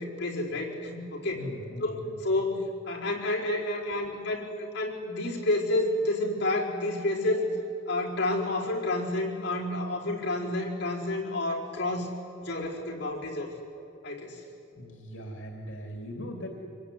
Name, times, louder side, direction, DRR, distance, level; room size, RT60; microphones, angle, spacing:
voice 1, 0.0-1.4 1.8-7.5 7.9-12.1 12.4-13.5 14.0-14.4, left 2 dB, 60° left, -4 dB, 4.7 m, -30 dB
voice 2, 1.3-2.1 3.9-4.1 14.7-16.5, equal, 85° left, 2 dB, 2.7 m, -40 dB
25.5 x 22.0 x 9.9 m, 2.8 s
head